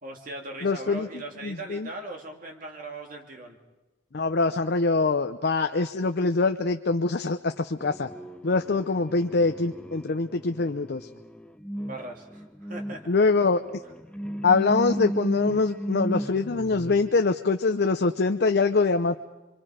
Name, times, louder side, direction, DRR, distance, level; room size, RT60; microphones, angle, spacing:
voice 1, 0.0-3.6 11.8-13.1, right 2 dB, 45° right, 1 dB, 2.5 m, -39 dB
voice 2, 0.6-1.1 1.4-1.9 4.1-8.1 8.4-11.1 13.1-13.6 14.4-19.2, left 3 dB, 55° left, 7 dB, 0.6 m, -24 dB
sound 1, 7.8-17.2, equal, 5° left, 0.6 m, -35 dB
25.5 x 24.5 x 5.0 m, 1.1 s
head